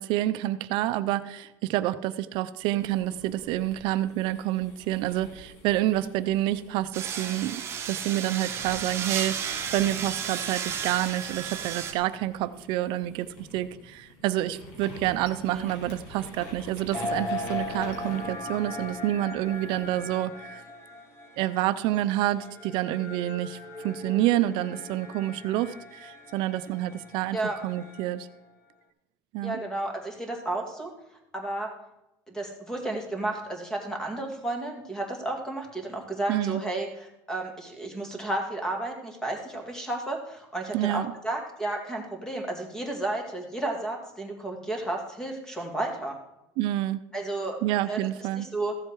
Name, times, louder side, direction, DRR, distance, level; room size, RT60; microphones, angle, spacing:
voice 1, 0.0-20.6 21.4-23.6 23.8-27.4 27.6-28.3 29.3-29.6 36.3-36.6 40.7-41.1 46.6-47.0 47.6-48.5, right 14 dB, 60° right, 12 dB, 0.6 m, -28 dB
sound 1, 2.6-8.0 8.5-20.1, left 2 dB, 85° left, 3.5 m, -48 dB
sound 2, 6.9-11.9, right 7 dB, 30° right, 1.5 m, -33 dB
voice 2, 15.3-15.7 27.3-27.6 29.4-30.9 31.3-31.7 32.3-46.2 47.1-47.6 47.8-48.0 48.4-48.7, right 2 dB, 5° left, 3 dB, 2.1 m, -32 dB
sound 3, 16.9-28.3, left 2 dB, 30° left, 1.2 m, -39 dB
14.5 x 7.6 x 4.7 m, 0.90 s
cardioid pair, 155°, 9 cm